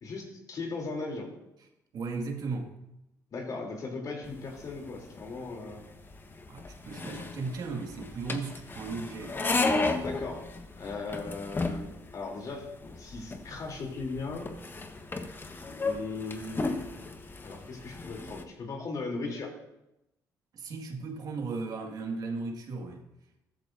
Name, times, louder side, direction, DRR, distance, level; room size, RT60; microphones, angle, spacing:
voice 1, 0.0-1.3 3.3-5.8 10.0-10.5 10.8-14.5 15.7-16.9 17.4-19.5, left 3 dB, 55° left, 1 dB, 3.2 m, -38 dB
voice 2, 1.9-2.7 6.5-9.4 20.5-23.0, right 4 dB, 60° right, 2 dB, 2.0 m, -36 dB
sound 1, 4.2-18.4, left 3 dB, 30° left, 1.2 m, -35 dB
14.5 x 13.5 x 2.7 m, 0.88 s
supercardioid pair, 75°, 7 cm